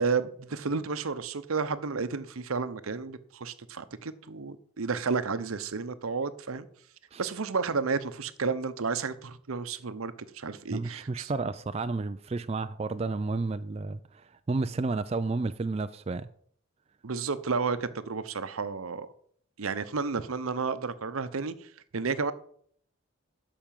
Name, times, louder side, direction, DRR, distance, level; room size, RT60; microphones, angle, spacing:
voice 1, 0.0-6.7 7.2-11.3 17.0-19.1 19.6-22.3, right 4 dB, 80° right, 0.8 m, -32 dB
voice 2, 10.7-16.3, right 3 dB, 30° right, 0.3 m, -31 dB
12.0 x 5.0 x 7.4 m
head